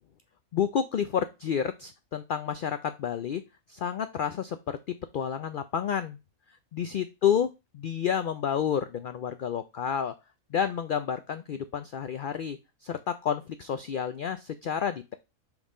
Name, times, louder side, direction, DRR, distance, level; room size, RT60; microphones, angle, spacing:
voice 1, 0.5-3.4 3.7-6.2 6.7-10.2 10.5-15.1, left 8 dB, 90° left, 10 dB, 0.4 m, -30 dB
5.4 x 4.7 x 3.7 m, 0.25 s
omnidirectional pair, 1.4 m